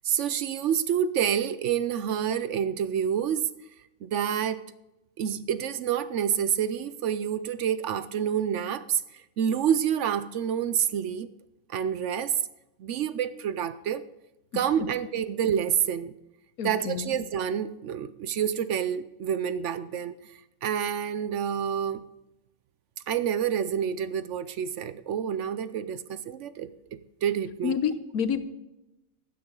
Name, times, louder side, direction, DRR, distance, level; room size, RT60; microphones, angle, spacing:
voice 1, 0.0-3.5 4.0-4.6 5.2-11.3 11.7-12.3 12.8-14.0 14.5-16.1 16.6-20.3 20.6-22.0 23.1-27.8, right 8 dB, 65° right, 14 dB, 0.8 m, -28 dB
voice 2, 16.6-17.2 27.6-28.4, left 7 dB, 90° left, 11 dB, 1.4 m, -28 dB
15.5 x 9.2 x 3.8 m, 0.96 s
omnidirectional pair, 1.5 m